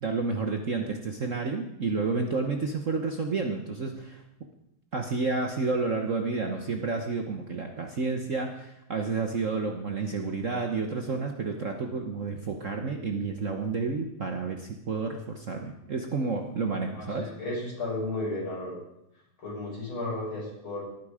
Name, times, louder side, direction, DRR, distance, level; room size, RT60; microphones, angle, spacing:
voice 1, 0.0-4.2 4.9-17.3, right 4 dB, 45° right, 4 dB, 1.2 m, -30 dB
voice 2, 16.9-18.8 19.4-20.8, left 2 dB, 70° left, -5 dB, 7.0 m, -33 dB
19.0 x 9.4 x 5.0 m, 0.84 s
omnidirectional pair, 2.4 m